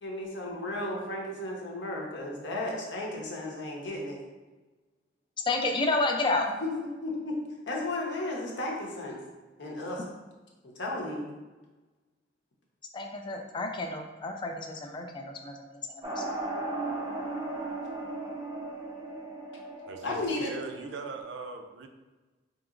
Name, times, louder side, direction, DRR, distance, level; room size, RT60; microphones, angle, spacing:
voice 1, 0.0-4.2 6.4-6.7 7.0-7.3 7.7-9.2 9.6-10.0 10.6-11.3 20.0-20.5, left 2 dB, 70° left, -2 dB, 0.8 m, -34 dB
voice 2, 5.5-6.5 12.9-15.5 16.2-16.3, left 2 dB, 25° left, 3 dB, 0.3 m, -30 dB
sound 1, 16.0-21.2, right 2 dB, 20° right, 0.6 m, -36 dB
voice 3, 19.9-21.9, right 4 dB, 70° right, 5 dB, 0.4 m, -40 dB
4.7 x 2.8 x 2.5 m, 1.2 s
head